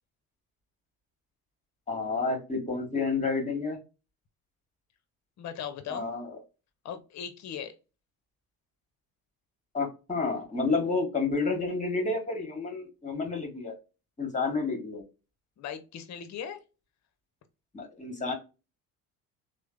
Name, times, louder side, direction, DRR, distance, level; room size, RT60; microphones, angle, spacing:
voice 1, 1.9-3.8 5.9-6.4 9.7-13.7 14.2-15.0 17.7-18.3, left 4 dB, 20° left, 1.3 m, -30 dB
voice 2, 5.4-6.1 6.8-7.7 15.6-16.6, left 8 dB, 45° left, 0.7 m, -38 dB
3.1 x 2.0 x 2.3 m
hypercardioid pair, 65°, 41 cm